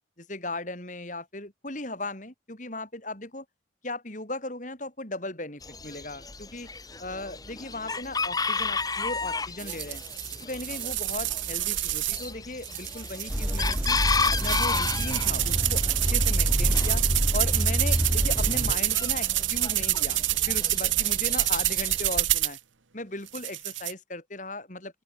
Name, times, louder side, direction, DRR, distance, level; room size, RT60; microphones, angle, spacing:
voice 1, 0.2-3.4 3.8-6.7 7.0-10.0 10.4-14.0 14.3-17.0 17.3-20.2 20.5-22.6 22.9-25.0, left 2 dB, 40° left, 5.1 m, -37 dB
Chicken rooster, 5.6-22.2, left 4 dB, 20° left, 2.9 m, -33 dB
sound 1, 9.6-12.3 12.6-22.6 23.3-23.9, right 15 dB, 90° right, 1.3 m, -28 dB
sound 2, 13.3-18.7, equal, 5° right, 0.9 m, -27 dB
open air
head